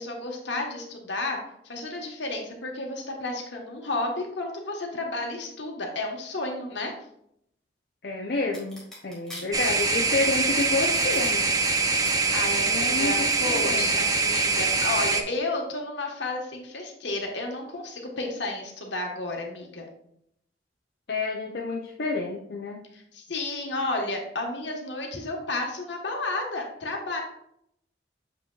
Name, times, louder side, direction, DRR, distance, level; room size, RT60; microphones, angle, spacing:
voice 1, 0.0-1.4 1.6-6.9 12.1-19.8 22.9-27.2, left 2 dB, 75° left, 1 dB, 1.3 m, -32 dB
voice 2, 8.0-11.5 12.6-14.0 21.1-22.8, left 3 dB, 55° left, -1 dB, 0.6 m, -29 dB
sound 1, 8.5-11.3 11.6-12.1, left 1 dB, 5° left, 1.9 m, -42 dB
sound 2, 9.5-15.2, right 3 dB, 20° right, 0.5 m, -24 dB
6.8 x 6.0 x 2.4 m, 0.73 s
head